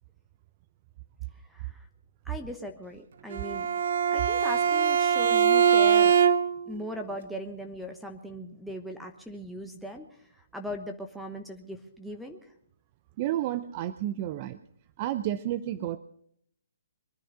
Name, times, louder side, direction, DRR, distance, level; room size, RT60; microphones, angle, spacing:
voice 1, 1.4-1.9 2.2-3.7 4.1-6.2 6.7-12.5, left 1 dB, ahead, 5 dB, 1.0 m, -39 dB
Bowed string instrument, 3.3-6.7, right 7 dB, 60° right, 1.0 m, -22 dB
voice 2, 13.2-14.6 15.0-16.0, right 13 dB, 35° right, 14 dB, 0.6 m, -31 dB
22.5 x 10.0 x 5.6 m, 0.68 s
hypercardioid pair, 140°, 0 cm